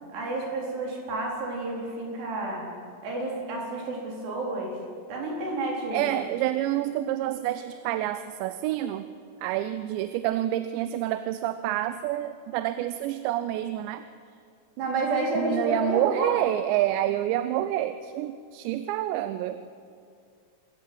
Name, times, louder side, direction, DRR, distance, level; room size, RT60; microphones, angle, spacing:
voice 1, 0.1-2.7 3.0-4.8 5.1-6.3 14.8-16.3, right 2 dB, 70° right, -2 dB, 6.2 m, -30 dB
voice 2, 5.9-9.1 9.4-14.0 15.4-19.6, right 13 dB, 90° right, 11 dB, 2.9 m, -28 dB
26.5 x 14.5 x 7.7 m, 2.3 s
omnidirectional pair, 5.0 m